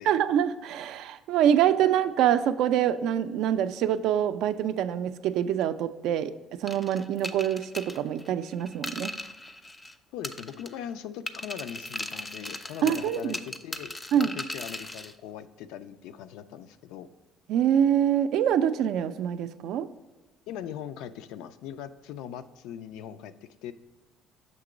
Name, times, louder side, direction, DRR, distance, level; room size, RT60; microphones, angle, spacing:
voice 1, 0.0-6.3 6.6-9.1 12.8-13.4 14.1-14.4 17.5-19.9, right 10 dB, 75° right, 11 dB, 0.3 m, -25 dB
sound 1, 6.7-9.9 10.2-10.9 11.3-15.1, left 1 dB, 20° left, 0.4 m, -38 dB
voice 2, 10.1-17.1 20.5-23.7, left 9 dB, 85° left, 11 dB, 0.3 m, -40 dB
6.6 x 2.9 x 5.0 m, 1.2 s
supercardioid pair, 90°, 0 cm